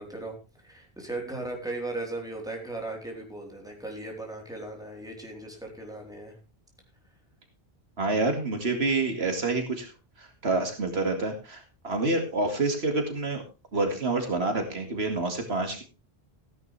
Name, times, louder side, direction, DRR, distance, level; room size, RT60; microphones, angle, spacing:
voice 1, 0.0-6.4, right 2 dB, 5° right, 0 dB, 3.9 m, -37 dB
voice 2, 8.0-9.9 10.2-13.4 13.7-15.8, right 3 dB, 75° right, 5 dB, 2.5 m, -28 dB
15.5 x 10.5 x 3.4 m, 0.30 s
omnidirectional pair, 1.1 m